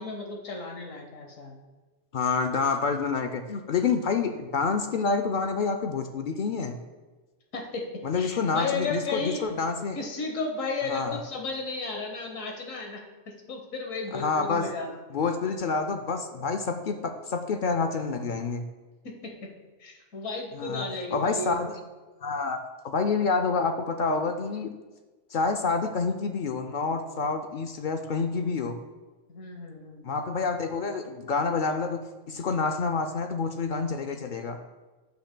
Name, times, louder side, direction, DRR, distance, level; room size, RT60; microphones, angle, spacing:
voice 1, 0.0-1.6 7.5-9.4 9.9-13.0 13.5-14.9 19.0-19.3 19.8-21.6 29.3-30.1, left 3 dB, 85° left, 2 dB, 1.5 m, -34 dB
voice 2, 2.1-6.8 8.0-10.0 10.8-11.2 14.1-14.7 15.1-18.6 20.5-21.8 22.2-22.6 22.8-24.7 25.3-28.8 30.0-32.0 32.3-34.6, left 4 dB, 65° left, 5 dB, 0.5 m, -28 dB
13.0 x 5.8 x 2.2 m, 1.3 s
omnidirectional pair, 1.3 m